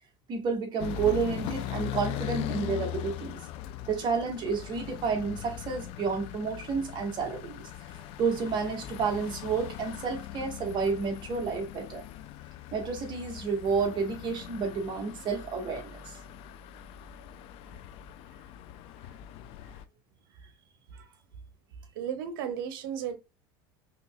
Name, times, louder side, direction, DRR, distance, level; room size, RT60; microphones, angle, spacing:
voice 1, 0.3-3.4 3.9-7.7 8.2-12.0 12.7-16.2, right 5 dB, 40° right, 1.2 m, -30 dB
sound 1, 0.8-19.8, left 12 dB, 55° left, 0.4 m, -40 dB
voice 2, 21.9-23.1, right 8 dB, 80° right, 0.8 m, -35 dB
3.9 x 2.9 x 2.2 m
supercardioid pair, 115°, 12 cm